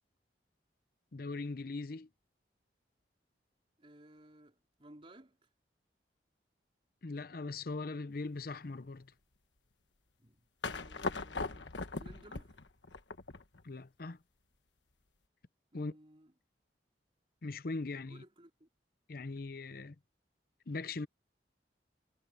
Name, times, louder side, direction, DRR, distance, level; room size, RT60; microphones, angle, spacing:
voice 1, 1.1-2.1 7.0-9.1 13.6-14.2 15.7-15.9 17.4-18.2 19.1-20.0 20.7-21.1, left 3 dB, 55° left, 0.7 m, -40 dB
voice 2, 3.8-5.5 10.2-11.7 12.0-12.6 15.7-16.3 18.1-18.7, right 1 dB, 30° right, 4.1 m, -58 dB
sound 1, 10.6-13.6, left 3 dB, 85° left, 1.4 m, -39 dB
head